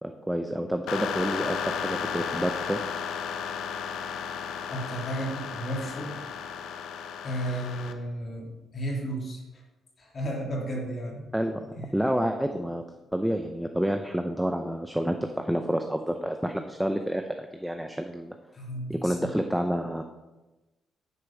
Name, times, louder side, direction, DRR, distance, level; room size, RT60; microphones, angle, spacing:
voice 1, 0.0-2.8 11.3-11.7 11.9-12.8 13.1-18.3 18.9-20.0, equal, 5° right, 5 dB, 0.6 m, -29 dB
sound 1, 0.9-7.9, left 7 dB, 80° left, 0.7 m, -34 dB
voice 2, 4.7-6.2 7.2-9.6 10.0-11.2 11.7-11.9 18.5-19.3, right 1 dB, 40° left, -2 dB, 3.0 m, -33 dB
9.6 x 5.0 x 5.9 m, 1.1 s
cardioid pair, 90°, 0 cm